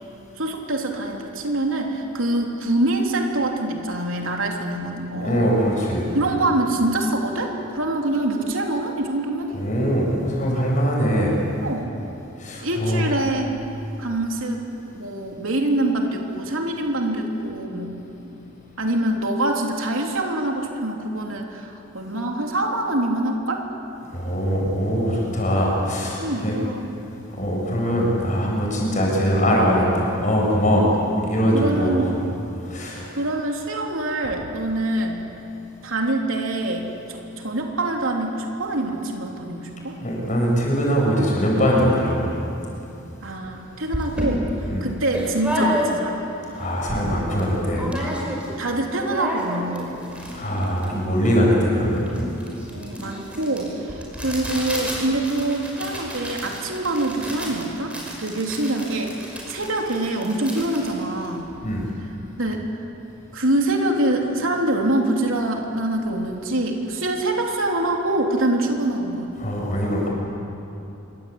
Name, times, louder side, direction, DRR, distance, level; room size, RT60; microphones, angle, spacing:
voice 1, 0.4-5.5 6.1-9.6 11.6-11.9 12.6-13.6 14.0-14.6 14.9-18.3 18.8-23.7 26.2-26.9 30.8-31.0 31.5-32.2 33.2-35.2 35.8-40.0 43.2-44.5 44.8-46.3 48.0-49.9 52.7-61.5 62.4-62.6 63.3-69.3, right 1 dB, 75° right, 1 dB, 3.3 m, -25 dB
voice 2, 5.2-6.1 9.5-11.4 12.4-13.1 24.1-26.6 27.4-30.9 31.3-32.0 32.6-33.1 40.0-42.3 44.7-44.9 46.5-47.9 50.3-52.1 61.6-61.9 69.4-70.1, equal, 35° left, -2 dB, 8.0 m, -22 dB
sound 1, 43.4-43.5 43.9-46.3 46.7-46.8 47.0-47.5 47.8-48.6 48.8-61.9, equal, 5° right, 5.3 m, -31 dB
27.0 x 24.5 x 8.8 m, 2.9 s
head